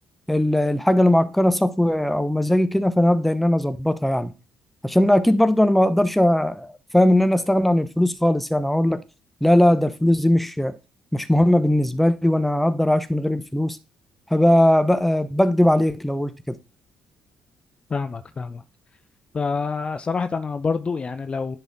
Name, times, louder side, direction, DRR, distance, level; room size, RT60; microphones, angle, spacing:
voice 1, 0.3-4.3 4.8-9.0 9.4-10.8 11.1-13.8 14.3-16.6, left 1 dB, 5° left, 0.9 m, -19 dB
voice 2, 17.9-18.6 19.3-21.6, left 4 dB, 35° left, 0.6 m, -27 dB
10.0 x 4.1 x 4.0 m
hypercardioid pair, 50°, 3 cm